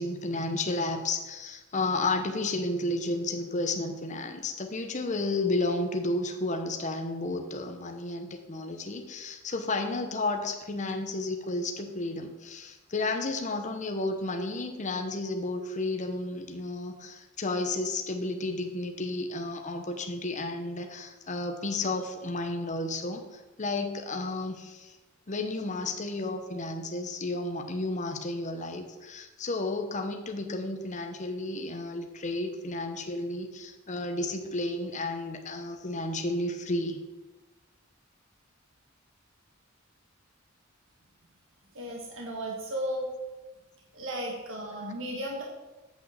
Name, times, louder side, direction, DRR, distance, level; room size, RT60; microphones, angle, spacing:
voice 1, 0.0-25.0 25.3-37.0, left 2 dB, 35° left, 5 dB, 0.9 m, -32 dB
voice 2, 41.7-43.1 43.9-45.4, equal, 65° right, -1 dB, 1.6 m, -34 dB
8.4 x 6.4 x 6.9 m, 1.2 s
head